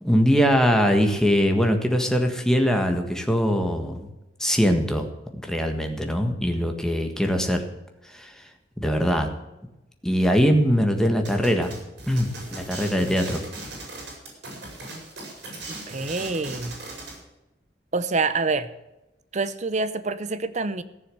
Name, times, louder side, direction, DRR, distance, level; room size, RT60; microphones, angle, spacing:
voice 1, 0.0-4.1 4.4-5.1 5.4-7.7 8.1-8.3 8.8-9.3 10.0-11.7 12.1-13.4, equal, 5° left, 4 dB, 1.6 m, -22 dB
sound 1, 11.3-17.2, right 2 dB, 75° right, 5.6 m, -38 dB
voice 2, 15.7-16.8 17.9-18.7 19.3-20.8, right 3 dB, 40° right, 13 dB, 0.7 m, -26 dB
15.0 x 7.1 x 7.8 m, 0.98 s
head